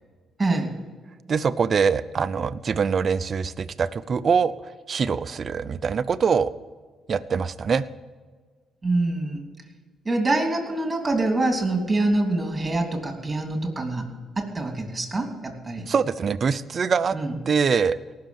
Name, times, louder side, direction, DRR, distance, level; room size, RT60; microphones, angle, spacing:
voice 1, 0.4-0.7 8.8-9.4 10.0-14.1 14.4-15.8 17.1-17.3, right 2 dB, 20° right, 3 dB, 3.2 m, -25 dB
voice 2, 1.3-6.5 7.1-7.9 15.9-17.2 17.5-18.0, right 6 dB, 45° right, 13 dB, 0.6 m, -23 dB
18.0 x 6.6 x 7.2 m, 1.5 s
cardioid pair, 90°, 0 cm